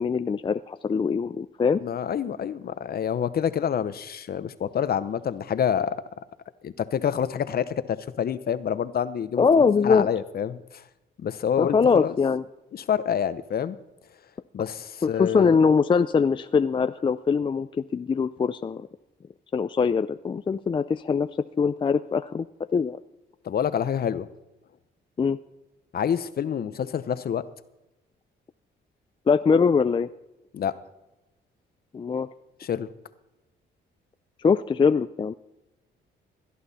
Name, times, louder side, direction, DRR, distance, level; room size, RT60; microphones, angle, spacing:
voice 1, 0.0-1.8 9.4-10.1 11.6-12.4 15.0-17.7 17.9-18.9 19.5-21.3 21.6-22.5 22.7-23.0 25.2-25.4 29.3-30.1 31.9-32.3 34.4-35.3, left 5 dB, 25° left, 11 dB, 0.4 m, -22 dB
voice 2, 1.8-6.0 6.6-9.5 9.8-10.8 11.2-12.1 12.7-13.8 14.5-15.6 23.4-24.3 25.9-27.4 30.5-30.7 32.6-32.9, left 8 dB, 50° left, 14 dB, 0.8 m, -27 dB
17.5 x 11.5 x 4.2 m, 0.96 s
cardioid pair, 90°, 20 cm